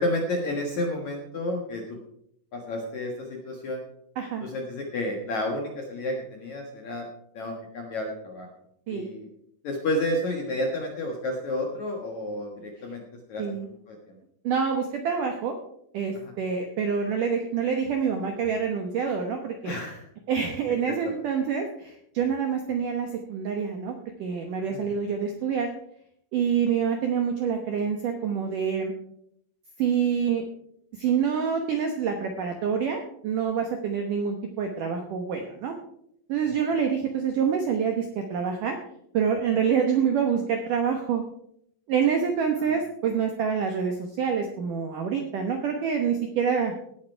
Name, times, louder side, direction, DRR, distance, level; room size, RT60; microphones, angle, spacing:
voice 1, 0.0-2.0 2.5-3.8 4.4-7.1 7.3-8.5 8.9-9.3 9.6-13.0 13.3-14.2 16.2-16.3 19.6-20.1 24.7-25.0 42.6-42.8, left 1 dB, 60° left, 1 dB, 2.0 m, -31 dB
voice 2, 4.2-4.5 8.9-9.1 13.4-13.7 14.4-15.6 15.9-19.7 20.3-25.7 26.3-28.9 29.8-30.4 31.0-35.8 36.3-38.8 39.1-41.2 41.9-46.7, right 7 dB, 75° right, 4 dB, 1.9 m, -26 dB
17.5 x 8.7 x 4.6 m, 0.71 s
omnidirectional pair, 5.4 m